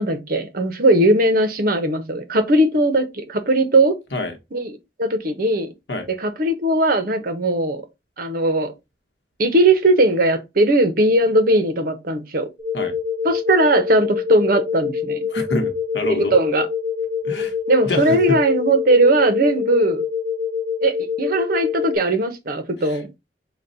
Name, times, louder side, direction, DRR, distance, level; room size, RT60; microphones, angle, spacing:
voice 1, 0.0-4.0 4.5-4.7 5.0-5.7 6.1-7.8 8.2-8.7 9.4-12.5 13.2-15.2 16.1-16.7 17.7-20.0 20.8-23.1, right 2 dB, 55° right, 0.9 m, -19 dB
sound 1, 12.6-22.0, left 6 dB, 30° right, 1.3 m, -25 dB
voice 2, 15.3-16.3 17.2-17.5 17.8-18.4 22.8-23.0, left 1 dB, 80° left, 1.0 m, -26 dB
5.2 x 2.3 x 3.9 m
head